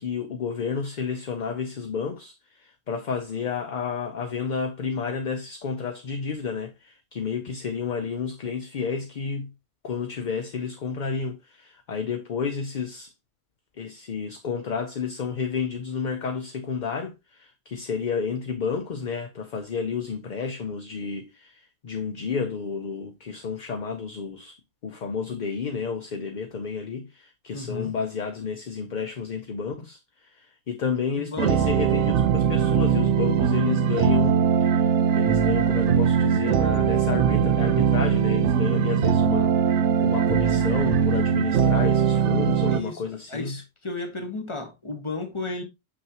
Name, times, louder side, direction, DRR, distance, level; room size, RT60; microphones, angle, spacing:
voice 1, 0.0-9.5 9.8-13.1 13.8-24.6 24.8-43.6, left 6 dB, 50° left, 0.7 m, -31 dB
voice 2, 27.5-28.0 31.2-31.7 42.7-43.0 43.3-45.6, left 3 dB, 25° left, 1.3 m, -34 dB
sound 1, 31.4-42.8, right 7 dB, 85° right, 0.9 m, -21 dB
6.2 x 5.9 x 2.8 m
omnidirectional pair, 1.2 m